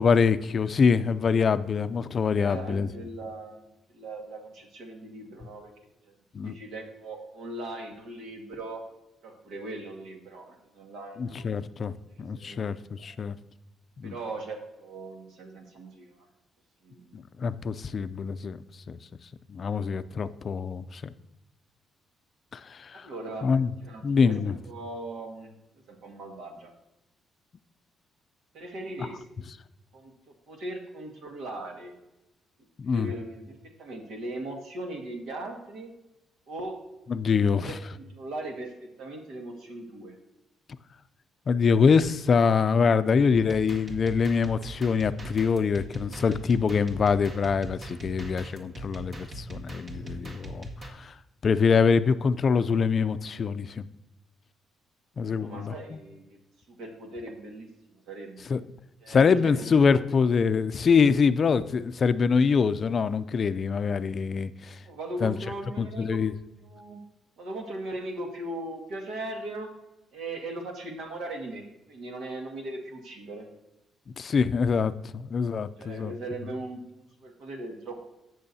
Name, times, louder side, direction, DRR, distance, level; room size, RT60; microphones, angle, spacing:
voice 1, 0.0-2.9 6.3-6.5 11.2-11.9 12.2-13.3 14.0-14.1 17.1-18.6 18.9-19.0 19.5-21.0 22.5-23.0 23.4-23.7 24.0-24.5 32.8-33.1 37.1-37.8 41.5-51.1 51.4-53.8 55.2-55.7 58.5-58.6 59.1-64.8 65.2-65.3 65.8-66.3 74.2-76.1, left 5 dB, 45° left, 13 dB, 0.4 m, -24 dB
voice 2, 2.3-3.7 3.9-5.7 6.1-8.8 9.2-11.6 12.4-12.6 13.0-13.3 14.0-16.3 16.8-17.2 22.9-25.5 25.9-26.7 28.5-29.2 29.9-31.9 32.8-35.9 36.5-36.8 37.6-40.2 55.4-56.3 56.7-58.5 59.0-60.0 64.8-66.2 66.6-67.0 67.4-69.7 70.1-73.5 75.8-78.1, right 2 dB, 80° right, 2 dB, 1.9 m, -39 dB
sound 1, 43.3-50.9, right 1 dB, 55° right, 1.8 m, -41 dB
17.0 x 6.3 x 2.7 m, 0.95 s
cardioid pair, 90°, 0 cm